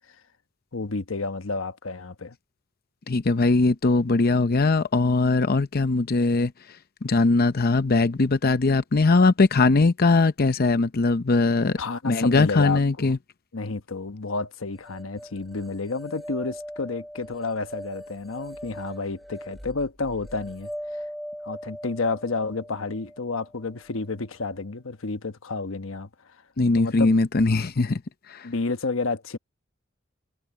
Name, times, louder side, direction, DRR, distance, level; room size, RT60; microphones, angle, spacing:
voice 1, 0.7-2.4 11.8-13.1 13.5-21.0 21.4-26.1 26.7-27.1 28.4-29.4, left 3 dB, 90° left, 1.1 m, -30 dB
voice 2, 3.1-6.5 7.0-11.8 12.0-13.2 26.6-28.0 28.3-28.5, left 3 dB, 50° left, 0.7 m, -20 dB
sound 1, 14.8-24.0, equal, ahead, 5.9 m, -40 dB
head